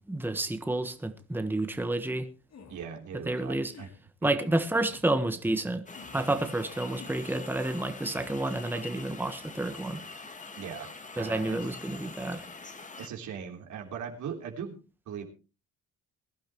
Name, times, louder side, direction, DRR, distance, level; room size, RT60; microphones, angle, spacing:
voice 1, 0.1-2.2 3.3-3.7 4.2-5.8 6.1-10.0 11.2-12.4, right 2 dB, 5° right, 1.3 m, -30 dB
sound 1, 2.5-2.9 3.6-4.0 4.8-5.1 5.9-6.3 7.0-7.2 8.0-8.4, left 5 dB, 60° left, 2.9 m, -50 dB
voice 2, 2.7-3.9 6.3-6.5 10.6-11.6 13.0-14.8 15.1-15.2, right 7 dB, 75° right, 3.5 m, -39 dB
sound 2, 5.9-13.1, left 4 dB, 25° left, 1.7 m, -45 dB
21.5 x 11.5 x 3.1 m
cardioid pair, 90°, 30 cm